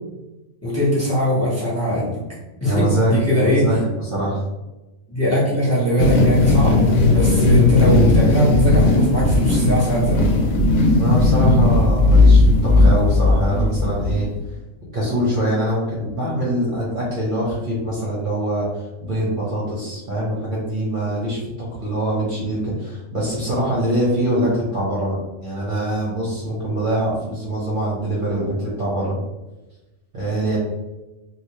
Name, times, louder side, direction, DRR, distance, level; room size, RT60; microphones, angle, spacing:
voice 1, 0.6-2.2 2.6-3.7 5.1-10.3, left 1 dB, 10° left, -7 dB, 1.0 m, -20 dB
voice 2, 2.6-3.1 3.4-4.4 10.9-14.3 14.9-29.2 30.1-30.6, right 1 dB, 40° right, -6 dB, 0.9 m, -23 dB
sound 1, 6.0-14.4, left 2 dB, 75° left, 1.0 m, -16 dB
3.3 x 2.5 x 2.8 m, 1.1 s
omnidirectional pair, 1.5 m